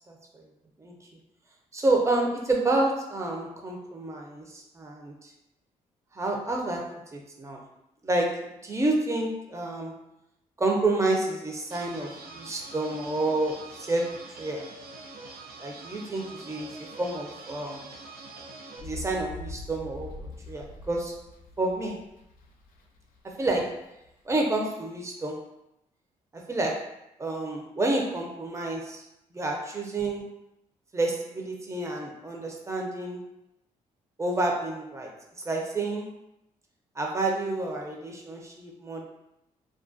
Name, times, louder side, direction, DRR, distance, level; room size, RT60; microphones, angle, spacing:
voice 1, 0.1-0.5 0.8-1.0 1.7-5.3 6.1-7.6 8.0-10.0 10.6-14.7 15.6-17.9 18.8-21.1 21.6-22.0 23.2-23.8 24.3-25.5 26.3-26.9 27.2-29.0 29.3-30.3 30.9-33.2 34.2-35.1 35.4-36.1 37.0-39.1, right 2 dB, 20° right, 0 dB, 0.5 m, -29 dB
sound 1, 11.7-18.8, right 3 dB, 85° right, 0.5 m, -45 dB
sound 2, 18.8-24.4, left 2 dB, 70° left, 0.4 m, -43 dB
2.3 x 2.2 x 2.5 m, 0.85 s
supercardioid pair, 65°, 15 cm